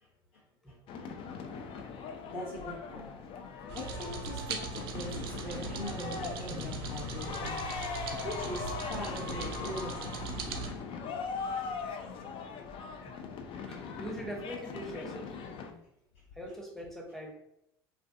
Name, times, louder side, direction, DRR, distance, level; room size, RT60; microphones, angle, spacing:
voice 1, 0.3-1.1 2.3-3.1 3.7-10.2 13.4-13.5 16.1-16.2, left 1 dB, 75° left, -7 dB, 0.8 m, -42 dB
sound 1, 0.9-15.7, left 5 dB, 45° left, 0.4 m, -40 dB
sound 2, 3.7-10.7, right 5 dB, 70° right, 0.4 m, -40 dB
voice 2, 13.7-15.3 16.4-17.3, equal, 5° left, 0 dB, 0.7 m, -42 dB
2.4 x 2.2 x 2.5 m, 0.77 s
hypercardioid pair, 70°, 13 cm